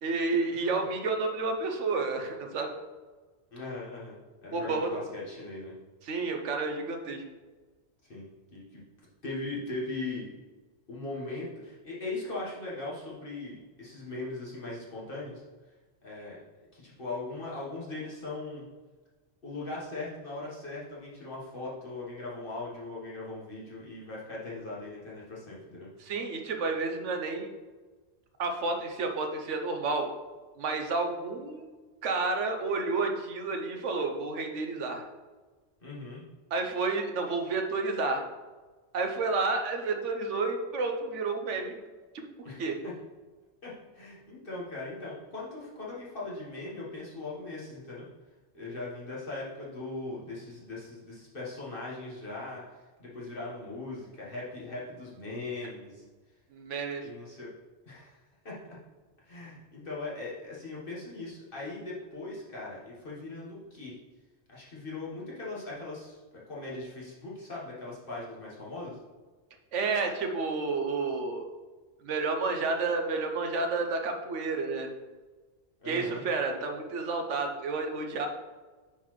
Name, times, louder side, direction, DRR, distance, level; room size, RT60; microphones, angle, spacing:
voice 1, 0.0-2.7 4.5-5.0 6.0-7.2 26.0-27.5 28.4-30.1 30.6-31.7 32.0-35.0 36.5-38.2 38.9-41.8 42.1-42.7 56.5-57.0 69.7-71.4 72.0-74.9 75.9-78.3, right 3 dB, 90° right, 4 dB, 1.2 m, -30 dB
voice 2, 0.5-0.8 3.5-5.7 8.1-8.2 8.5-8.8 9.2-10.3 10.9-15.4 16.0-16.4 16.7-18.6 19.4-25.9 35.8-36.2 42.4-42.9 43.6-48.0 48.5-56.0 57.0-57.5 57.9-58.1 58.4-58.6 59.2-63.9 64.5-66.2 66.5-69.0 75.8-76.2, left 2 dB, 50° left, -6 dB, 1.6 m, -39 dB
9.8 x 4.0 x 3.1 m, 1.3 s
omnidirectional pair, 1.2 m